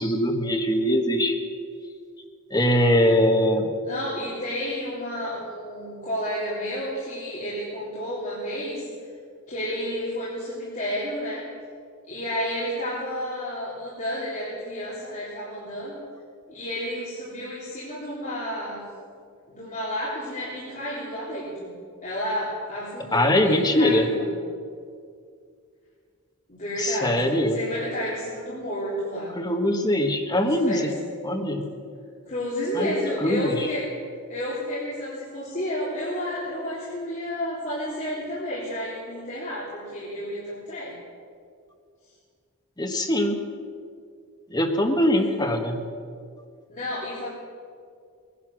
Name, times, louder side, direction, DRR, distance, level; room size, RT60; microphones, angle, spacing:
voice 1, 0.0-1.4 2.5-3.7 23.1-24.0 26.8-27.5 29.3-30.8 31.2-31.7 32.8-32.9 33.2-33.7 42.8-43.4 44.5-45.8, left 1 dB, 20° left, 3 dB, 1.5 m, -22 dB
voice 2, 3.8-8.8 9.5-11.4 12.1-16.0 16.5-18.8 19.5-21.7 22.0-24.3 26.5-29.3 30.4-30.9 32.3-33.9 34.3-40.9 45.0-45.6 46.7-47.3, equal, 35° left, -9 dB, 3.6 m, -31 dB
20.5 x 11.0 x 6.3 m, 2.2 s
head